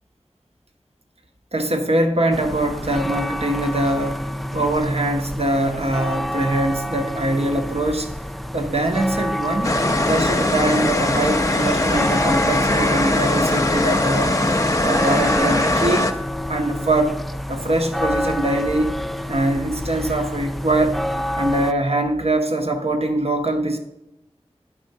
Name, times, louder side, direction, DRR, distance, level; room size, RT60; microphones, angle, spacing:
voice 1, 1.5-8.1 8.5-9.8 10.0-14.4 14.8-16.1 16.5-17.2 17.5-18.9 19.3-21.0 21.4-23.8, right 1 dB, 65° right, 4 dB, 1.1 m, -22 dB
sound 1, 2.3-21.7, left 1 dB, ahead, 0.4 m, -28 dB
sound 2, 9.6-16.1, left 1 dB, 30° left, 0.7 m, -20 dB
10.5 x 3.8 x 5.5 m, 0.87 s
wide cardioid pair, 55°, 11 cm